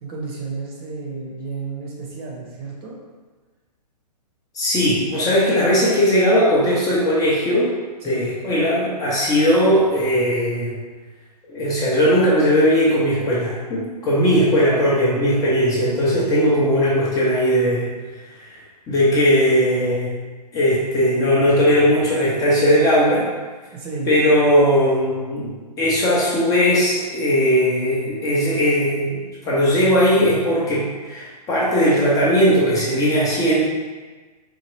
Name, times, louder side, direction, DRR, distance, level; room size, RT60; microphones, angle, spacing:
voice 1, 0.0-2.9 8.0-8.3 23.7-24.1, right 4 dB, 35° right, -2 dB, 0.9 m, -32 dB
voice 2, 4.5-7.7 8.0-10.7 11.5-17.9 18.4-18.5 18.9-20.1 20.5-23.3 24.1-33.6, equal, 15° left, -6 dB, 0.7 m, -18 dB
4.4 x 2.4 x 3.0 m, 1.4 s
hypercardioid pair, 130°, 21 cm